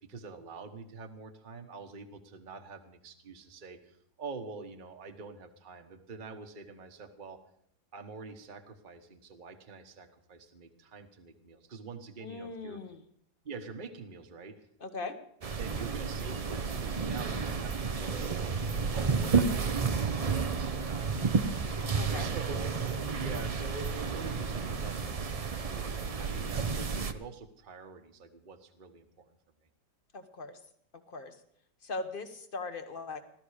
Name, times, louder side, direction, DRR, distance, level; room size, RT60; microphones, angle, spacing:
voice 1, 0.1-7.4 7.9-12.8 13.4-14.6 15.6-18.6 18.9-29.3, right 4 dB, 35° right, 5 dB, 1.2 m, -46 dB
voice 2, 12.2-13.0 14.8-15.2 22.0-22.3 30.1-30.6 31.1-31.4 31.8-33.2, left 3 dB, 35° left, 8 dB, 1.3 m, -39 dB
sound 1, 15.4-27.1, right 5 dB, 50° right, 0.4 m, -31 dB
16.5 x 13.0 x 4.9 m, 0.68 s
omnidirectional pair, 1.8 m